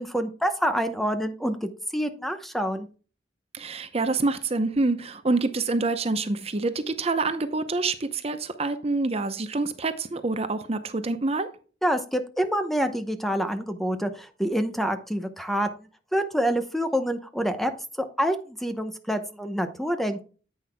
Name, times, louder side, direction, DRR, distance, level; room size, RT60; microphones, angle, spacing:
voice 1, 0.0-2.9 11.8-15.7 16.1-17.7 18.0-20.2, equal, ahead, 0.8 m, -27 dB
voice 2, 3.5-11.5, right 3 dB, 35° right, 0.7 m, -26 dB
9.6 x 8.7 x 2.2 m
head